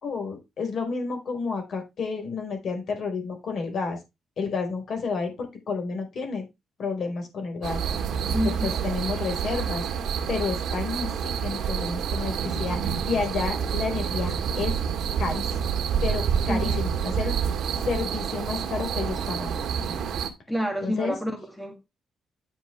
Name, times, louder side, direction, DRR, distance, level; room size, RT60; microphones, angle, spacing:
voice 1, 0.0-4.0 4.4-6.5 6.8-7.8 8.4-9.8 10.3-14.8 15.2-15.7 16.0-17.3 17.8-19.6 20.8-21.1, left 4 dB, 50° left, 4.4 m, -30 dB
sound 1, 7.6-20.3, right 7 dB, 70° right, 2.0 m, -28 dB
voice 2, 8.3-8.8 16.5-16.8 20.5-21.8, equal, ahead, 2.1 m, -29 dB
10.0 x 7.0 x 3.3 m
cardioid pair, 160°, 0 cm